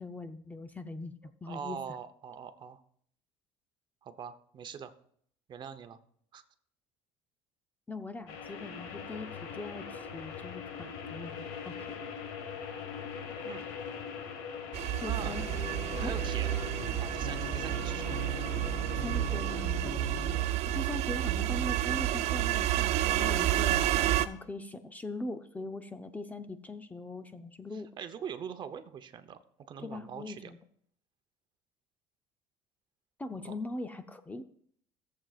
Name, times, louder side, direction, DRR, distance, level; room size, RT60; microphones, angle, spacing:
voice 1, 0.0-1.8 7.9-12.0 15.0-15.5 16.0-16.1 18.9-20.0 20.7-27.9 29.8-30.6 33.2-34.5, left 2 dB, 15° left, 9 dB, 0.6 m, -41 dB
voice 2, 1.5-2.8 4.0-4.9 5.5-6.0 6.3-6.4 13.4-13.6 15.0-15.4 16.0-16.5 17.0-18.2 27.7-29.4 29.7-30.5 33.4-33.5, right 8 dB, 40° right, 10 dB, 0.9 m, -42 dB
sound 1, 8.3-19.7, left 6 dB, 85° left, 1.7 m, -42 dB
sound 2, 14.7-24.3, right 13 dB, 70° right, 0.6 m, -30 dB
sound 3, 15.2-20.4, left 4 dB, 65° left, 3.8 m, -42 dB
17.0 x 7.6 x 2.4 m, 0.63 s
cardioid pair, 120°, 12 cm